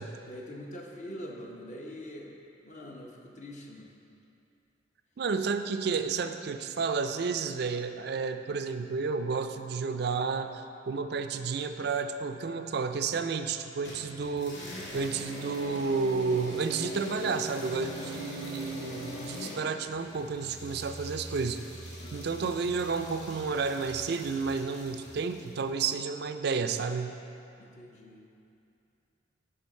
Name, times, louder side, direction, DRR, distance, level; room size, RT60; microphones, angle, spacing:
voice 1, 0.3-2.4 2.6-3.9 22.0-22.6 27.6-28.2, left 1 dB, 40° left, -1 dB, 0.9 m, -44 dB
voice 2, 5.2-14.6 14.9-21.6 22.1-27.2, right 5 dB, 55° right, 8 dB, 0.4 m, -31 dB
sound 1, 13.8-25.6, equal, 75° left, 1.7 m, -42 dB
11.0 x 3.8 x 5.4 m, 2.7 s
head